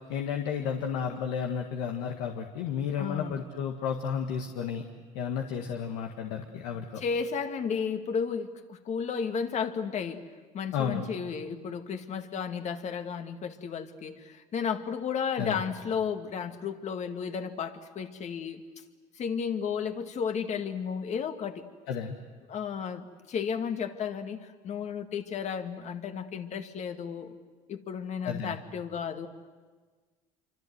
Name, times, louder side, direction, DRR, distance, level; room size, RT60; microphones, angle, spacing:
voice 1, 0.1-4.8 5.1-7.0 10.7-11.1 15.4-15.6 21.9-22.2 28.2-28.6, left 7 dB, 85° left, 3 dB, 1.7 m, -32 dB
voice 2, 3.0-3.4 7.0-10.2 10.5-18.6 19.2-21.6 22.5-27.3 27.7-29.3, left 6 dB, 50° left, 6 dB, 2.1 m, -33 dB
27.5 x 25.0 x 8.0 m, 1.4 s
supercardioid pair, 85°, 15 cm